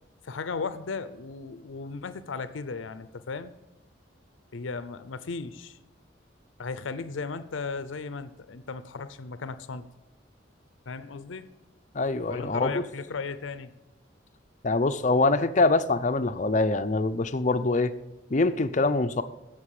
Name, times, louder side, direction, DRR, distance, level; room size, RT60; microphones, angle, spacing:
voice 1, 0.2-3.5 4.5-5.8 6.6-9.9 10.9-11.5 12.3-13.8, left 4 dB, 90° left, 14 dB, 0.6 m, -36 dB
voice 2, 11.9-12.8 14.6-17.9 18.3-19.2, left 3 dB, 40° left, 11 dB, 0.6 m, -24 dB
16.0 x 6.1 x 4.9 m, 1.1 s
head